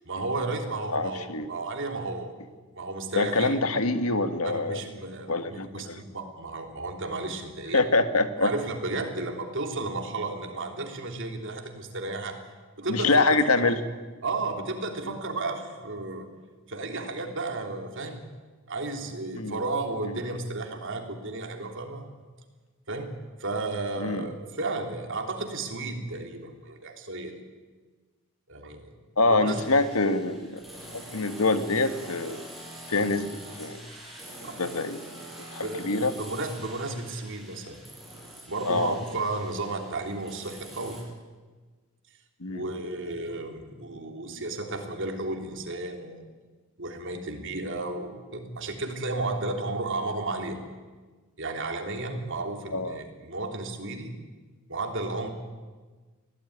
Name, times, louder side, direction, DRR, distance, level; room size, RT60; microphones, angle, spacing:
voice 1, 0.1-2.3 2.7-3.6 4.4-7.8 8.4-12.4 12.8-13.7 14.2-16.3 16.7-18.3 18.7-22.1 22.9-23.1 23.4-27.3 28.5-29.0 29.3-29.6 34.4-34.6 35.6-37.8 38.5-41.0 42.5-46.3 46.8-50.6 51.4-54.1 54.7-55.3, right 2 dB, 60° right, 3 dB, 3.3 m, -33 dB
voice 2, 0.9-1.5 3.2-4.8 5.3-6.0 7.7-8.5 12.9-13.8 15.1-15.2 19.3-19.6 20.0-20.2 24.0-24.3 29.2-30.6 30.9-32.4 32.9-33.3 33.6-33.8 34.4-35.0 35.5-36.1 38.7-39.0 42.4-42.6 52.7-53.0, left 3 dB, 85° left, 9 dB, 1.6 m, -25 dB
sound 1, 29.4-41.0, right 1 dB, ahead, 6.4 m, -45 dB
23.0 x 16.5 x 9.8 m, 1.4 s
head